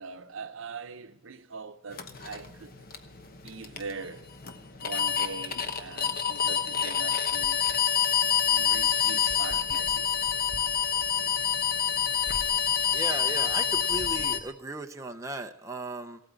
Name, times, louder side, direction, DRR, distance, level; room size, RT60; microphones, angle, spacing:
voice 1, 0.0-2.8 3.4-4.3 4.8-7.6 8.3-10.1, right 4 dB, 75° right, 0.8 m, -42 dB
sound 1, 1.9-14.4, left 8 dB, 45° left, 1.0 m, -27 dB
voice 2, 12.9-16.2, right 2 dB, 15° right, 0.6 m, -36 dB
16.0 x 8.9 x 8.2 m
head